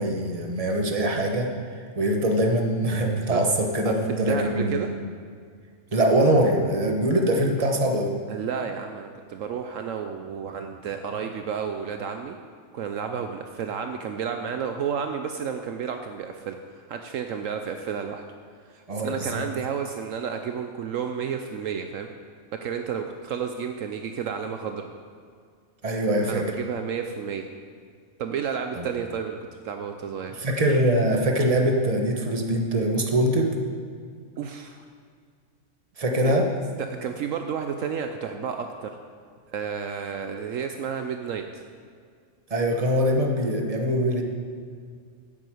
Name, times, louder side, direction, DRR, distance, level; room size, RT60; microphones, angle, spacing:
voice 1, 0.0-1.5 2.0-4.8 5.9-8.1 18.9-19.4 25.8-26.4 30.4-33.5 36.0-36.5 42.5-44.2, right 1 dB, 25° right, 2 dB, 1.3 m, -23 dB
voice 2, 3.8-4.9 8.3-12.4 12.7-18.2 18.7-22.1 22.6-24.9 26.3-27.5 28.2-29.4 29.6-30.4 34.4-34.8 36.2-36.3 36.8-38.9 39.5-41.4, right 7 dB, 70° right, 6 dB, 1.0 m, -31 dB
9.3 x 8.0 x 7.8 m, 2.1 s
omnidirectional pair, 1.5 m